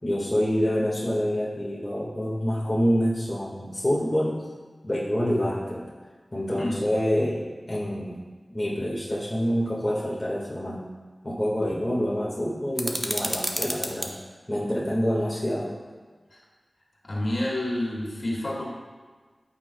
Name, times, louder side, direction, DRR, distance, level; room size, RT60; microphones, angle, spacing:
voice 1, 0.0-4.4 4.8-5.8 6.3-7.4 7.7-8.2 8.5-10.9 11.2-14.1 14.5-15.7, equal, 25° left, -6 dB, 1.6 m, -26 dB
sound 1, 12.8-14.1, right 1 dB, 25° right, 0.9 m, -30 dB
voice 2, 17.0-18.6, left 1 dB, 55° left, -4 dB, 2.1 m, -28 dB
13.5 x 5.8 x 2.3 m, 1.4 s
wide cardioid pair, 70°, 0 cm